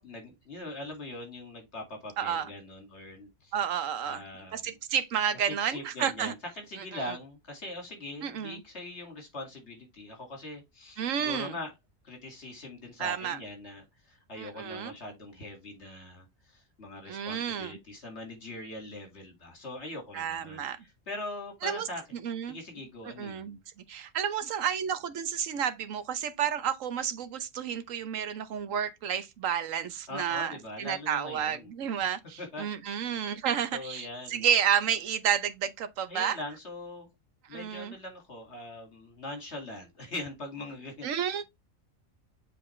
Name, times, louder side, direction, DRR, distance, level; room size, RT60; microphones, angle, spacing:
voice 1, 0.0-3.5 4.0-4.7 5.4-11.7 12.0-20.7 21.1-22.0 22.5-23.6 30.1-31.7 32.4-32.7 33.7-34.5 36.1-37.1 37.5-41.3, left 2 dB, 50° left, 2.5 m, -42 dB
voice 2, 2.2-2.5 3.5-4.2 4.5-6.3 6.9-7.2 8.2-8.6 11.0-11.5 13.0-13.4 14.4-14.9 17.1-17.8 20.1-20.8 21.6-21.9 22.2-22.6 23.2-23.6 23.9-36.4 37.5-37.9 41.0-41.4, right 8 dB, 70° right, 1.2 m, -31 dB
7.6 x 4.2 x 3.2 m
omnidirectional pair, 1.4 m